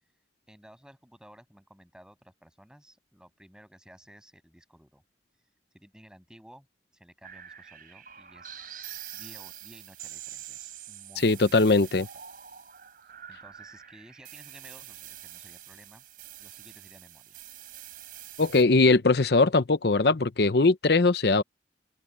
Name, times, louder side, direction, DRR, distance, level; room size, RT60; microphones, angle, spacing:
voice 1, 0.5-5.0 5.7-6.7 6.9-8.7 9.1-12.2 13.3-16.0 16.4-17.4, equal, 5° right, 6.7 m, -55 dB
sound 1, 7.2-18.6, right 10 dB, 50° right, 3.8 m, -45 dB
voice 2, 11.2-12.1 18.4-21.4, left 3 dB, 60° left, 0.8 m, -21 dB
open air
head